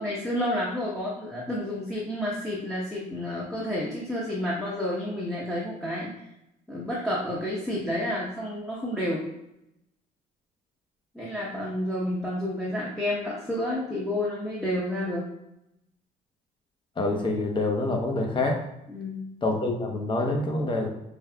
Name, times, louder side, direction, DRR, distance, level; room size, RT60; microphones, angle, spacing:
voice 1, 0.0-6.1 6.7-9.2 11.1-15.3 18.9-19.3, left 1 dB, 5° left, -7 dB, 0.9 m, -30 dB
voice 2, 17.0-18.6 19.4-20.9, left 2 dB, 30° left, 2 dB, 0.9 m, -26 dB
5.3 x 3.2 x 2.3 m, 0.84 s
cardioid pair, 110°, 17 cm